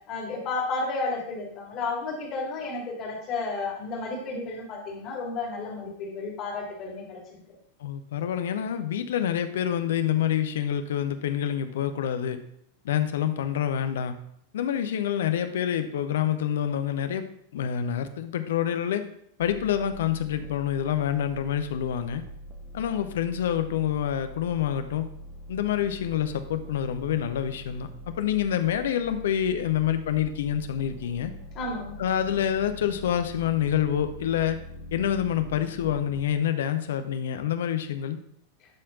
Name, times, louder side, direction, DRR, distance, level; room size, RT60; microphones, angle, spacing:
voice 1, 0.1-7.4 31.5-32.1, left 3 dB, 35° left, -1 dB, 2.4 m, -32 dB
voice 2, 7.8-12.4 12.8-14.2 14.5-17.2 17.5-19.0 19.4-22.2 22.7-25.1 25.5-31.3 32.0-34.6 34.9-38.2, left 10 dB, 60° left, 9 dB, 0.7 m, -27 dB
sound 1, 19.4-36.2, equal, 25° right, 1.3 m, -43 dB
11.5 x 4.3 x 3.8 m, 0.69 s
figure-of-eight pair, 90°, 0 cm